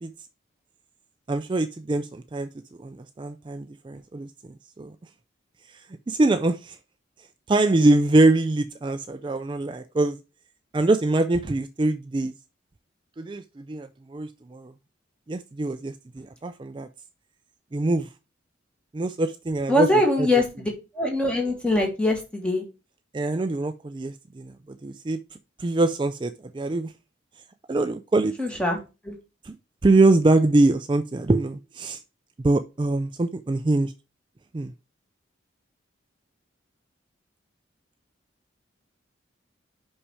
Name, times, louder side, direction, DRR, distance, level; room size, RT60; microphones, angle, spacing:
voice 1, 1.3-2.5 2.8-4.3 4.8-4.9 5.7-6.8 7.5-10.2 10.7-12.3 13.2-14.7 15.3-16.9 17.7-18.1 18.9-19.9 20.2-20.3 23.1-25.2 25.6-26.9 27.7-28.3 29.4-29.6 29.8-32.0 32.4-33.9 34.5-34.7, right 2 dB, 25° right, 0.3 m, -23 dB
voice 2, 19.7-22.6 28.4-29.2, left 1 dB, 5° left, 2.0 m, -23 dB
5.8 x 5.5 x 4.7 m
head